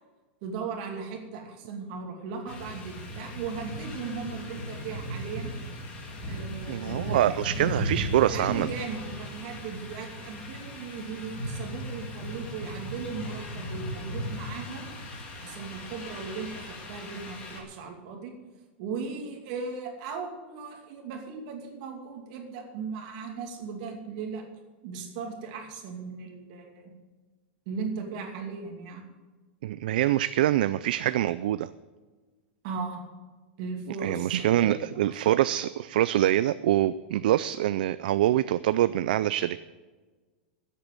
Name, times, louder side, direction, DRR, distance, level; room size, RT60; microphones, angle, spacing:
voice 1, 0.4-5.5 6.3-7.7 8.2-14.9 15.4-18.3 18.8-24.5 24.8-26.9 27.7-29.0 32.6-33.0 33.6-35.1, right 5 dB, 40° right, 2 dB, 2.5 m, -37 dB
sound 1, 2.5-17.6, equal, 20° left, 1.9 m, -37 dB
voice 2, 6.7-8.7 29.6-31.7 34.0-39.6, right 13 dB, 55° right, 14 dB, 0.4 m, -25 dB
13.5 x 8.3 x 7.0 m, 1.3 s
supercardioid pair, 180°, 6 cm